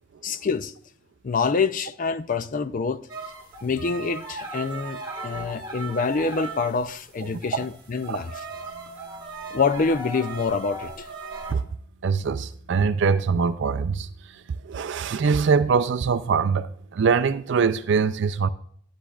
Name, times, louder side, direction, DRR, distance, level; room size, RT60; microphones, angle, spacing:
voice 1, 0.2-0.7 1.2-3.0 3.6-8.3 9.5-11.1, left 4 dB, 40° left, 0.4 m, -26 dB
sound 1, 3.1-6.9 7.2-11.5, right 3 dB, 20° right, 1.4 m, -37 dB
voice 2, 7.2-7.6 8.1-8.2 11.5-11.6 12.0-18.5, right 5 dB, 60° right, 0.4 m, -23 dB
10.5 x 9.8 x 2.3 m
head